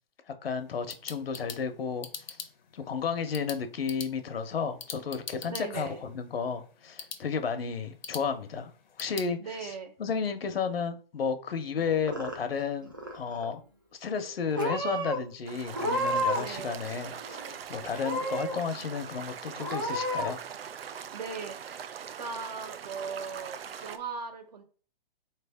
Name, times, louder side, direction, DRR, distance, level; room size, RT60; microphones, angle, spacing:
voice 1, 0.4-2.1 2.7-8.7 9.0-9.7 10.0-13.6 14.0-17.4 17.7-20.4, left 6 dB, 80° left, 8 dB, 1.0 m, -32 dB
sound 1, 0.6-9.3, left 6 dB, 50° left, 0.7 m, -45 dB
voice 2, 5.5-6.0 9.4-9.9 16.3-16.8 21.1-21.9 22.2-24.6, right 5 dB, 45° right, 7 dB, 0.8 m, -39 dB
Purr / Meow, 11.8-12.6 12.9-13.5 14.2-14.3 14.6-15.2 15.7-16.6 16.8-17.6 18.0-18.6 19.0-19.1 19.6-20.3, equal, 25° right, 0.4 m, -31 dB
sound 2, 15.4-24.0, right 8 dB, 80° right, 0.6 m, -42 dB
4.1 x 3.3 x 3.4 m, 0.39 s
hypercardioid pair, 175°, 29 cm